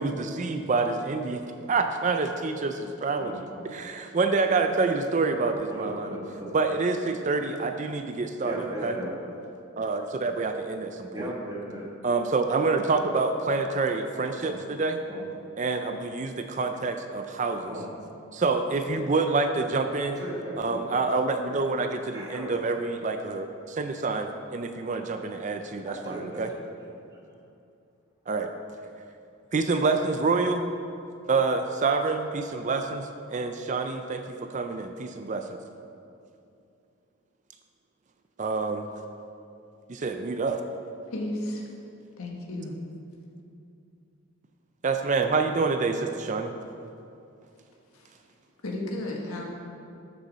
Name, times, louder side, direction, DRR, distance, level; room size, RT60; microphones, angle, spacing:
voice 1, 0.0-1.4 1.7-3.3 3.6-6.2 6.5-8.9 9.8-11.3 12.0-15.0 15.6-17.7 18.3-20.2 20.6-26.5 28.3-28.5 29.5-30.7 31.3-35.6 38.4-38.9 39.9-40.6 44.8-46.5, right 4 dB, 35° right, 6 dB, 0.4 m, -27 dB
voice 2, 3.2-3.6 5.7-6.5 8.4-9.1 11.1-11.9 14.4-14.6 15.1-15.2 17.7-17.9 20.2-21.0 22.1-22.6 25.8-26.6 26.9-27.1, right 1 dB, 15° right, -4 dB, 1.5 m, -37 dB
voice 3, 41.1-41.6 42.2-42.7 47.9-48.1 48.6-49.4, left 1 dB, 85° left, 0 dB, 1.5 m, -33 dB
12.5 x 6.7 x 4.2 m, 2.6 s
head